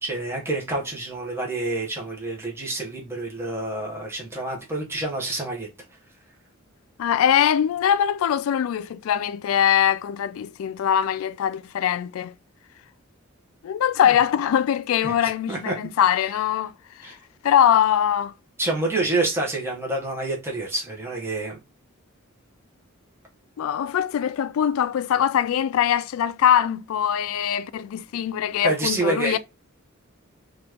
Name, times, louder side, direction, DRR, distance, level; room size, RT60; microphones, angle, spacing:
voice 1, 0.0-5.7 14.0-14.1 15.0-15.7 17.0-17.2 18.6-21.6 28.6-29.4, right 2 dB, 10° right, 0.8 m, -28 dB
voice 2, 7.0-12.3 13.6-16.7 17.0-17.2 17.4-18.3 23.6-29.4, left 9 dB, 80° left, 0.3 m, -22 dB
2.9 x 2.4 x 3.3 m
head